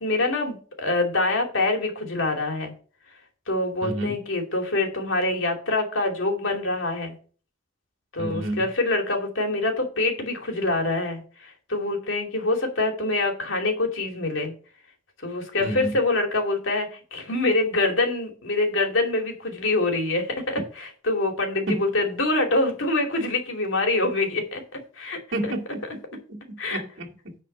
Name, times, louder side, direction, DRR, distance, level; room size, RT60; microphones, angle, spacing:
voice 1, 0.0-2.7 3.5-7.1 8.1-14.5 15.2-24.6 25.0-25.2 26.6-26.8, left 2 dB, 85° left, 2.7 m, -25 dB
voice 2, 3.8-4.2 8.2-8.7 15.6-16.0 21.7-21.8 25.3-27.4, right 1 dB, 65° right, 2.3 m, -31 dB
10.0 x 4.5 x 6.7 m
head